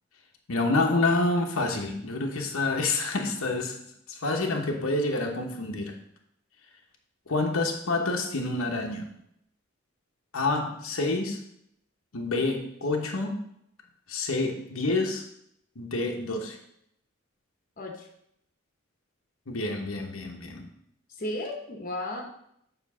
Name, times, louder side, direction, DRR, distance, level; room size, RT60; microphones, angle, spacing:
voice 1, 0.5-3.8 4.1-5.9 7.3-9.1 10.3-11.4 12.1-13.4 14.1-15.2 15.8-16.6 19.5-20.7, left 2 dB, 85° left, 1 dB, 1.0 m, -28 dB
voice 2, 17.8-18.1 21.1-22.2, left 1 dB, 40° left, 1 dB, 1.0 m, -34 dB
7.0 x 3.2 x 6.1 m, 0.74 s
head